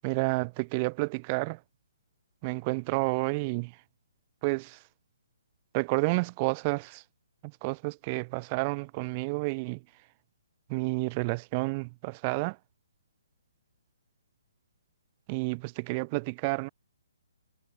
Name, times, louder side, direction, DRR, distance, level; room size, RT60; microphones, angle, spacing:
voice 1, 0.0-1.6 2.4-3.7 4.4-4.8 5.7-7.0 7.4-9.8 10.7-12.6 15.3-16.7, right 28 dB, 30° right, 2.1 m, -30 dB
hypercardioid pair, 155°, 0 cm